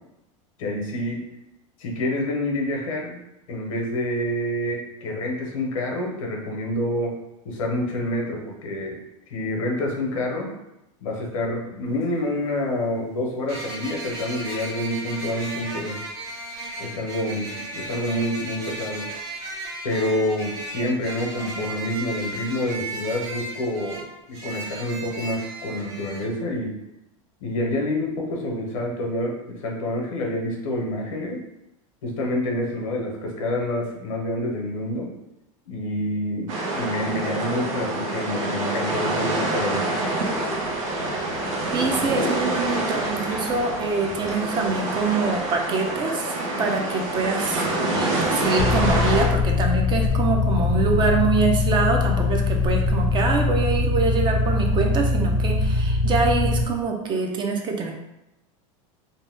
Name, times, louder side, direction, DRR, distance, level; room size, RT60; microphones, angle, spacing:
voice 1, 0.6-1.2 1.8-3.2 3.5-7.2 7.4-9.0 9.3-10.5 11.0-16.0 16.8-19.1 19.8-24.0 24.3-26.8 27.4-31.4 32.0-35.1 35.7-39.9 41.0-41.1, left 1 dB, 85° left, 0 dB, 0.9 m, -27 dB
sound 1, 13.5-26.3, right 2 dB, 60° right, 1.1 m, -35 dB
sound 2, 36.5-49.3, right 2 dB, 90° right, 0.8 m, -26 dB
voice 2, 41.7-57.9, right 4 dB, 30° right, 2 dB, 0.5 m, -25 dB
sound 3, 48.6-56.6, left 3 dB, 60° left, 0.6 m, -22 dB
2.8 x 2.1 x 3.4 m, 0.90 s
supercardioid pair, 125°, 17 cm